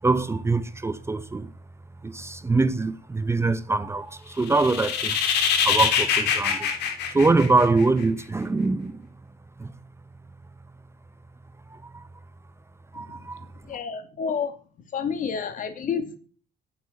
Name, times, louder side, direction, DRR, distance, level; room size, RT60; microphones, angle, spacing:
voice 1, 0.0-1.5 2.0-9.1 9.6-9.8 11.7-12.1 12.9-13.5, right 3 dB, 15° right, 0.8 m, -24 dB
sound 1, 4.4-8.0, left 7 dB, 80° left, 3.0 m, -24 dB
voice 2, 13.7-14.5 14.9-16.2, left 6 dB, 50° left, 2.5 m, -29 dB
12.0 x 7.5 x 8.1 m
cardioid pair, 110°, 17 cm